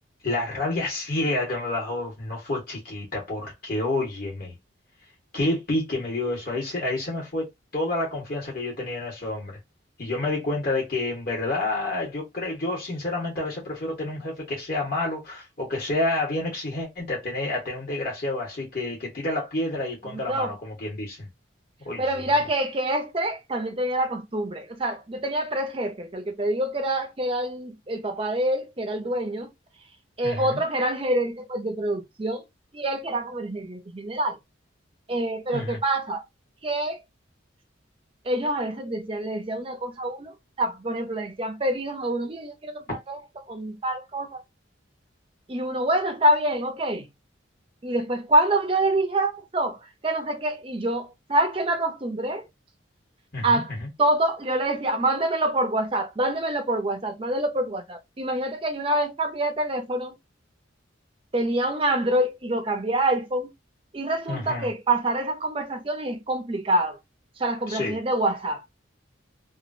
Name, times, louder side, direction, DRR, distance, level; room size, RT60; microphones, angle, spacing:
voice 1, 0.2-4.5 5.3-7.5 7.7-9.5 10.0-21.3 21.8-22.3 30.2-30.6 35.5-35.8 53.3-53.9 64.3-64.7 67.7-68.0, left 2 dB, 50° left, 1.4 m, -29 dB
voice 2, 22.0-29.5 30.2-32.4 32.7-34.4 35.1-36.2 36.6-37.0 38.3-40.3 40.6-43.2 43.5-44.3 45.5-47.1 47.8-49.8 50.0-52.4 53.4-53.7 54.0-60.1 61.3-63.5 63.9-67.0 67.4-68.6, right 1 dB, 30° right, 0.6 m, -26 dB
3.0 x 2.4 x 2.6 m
head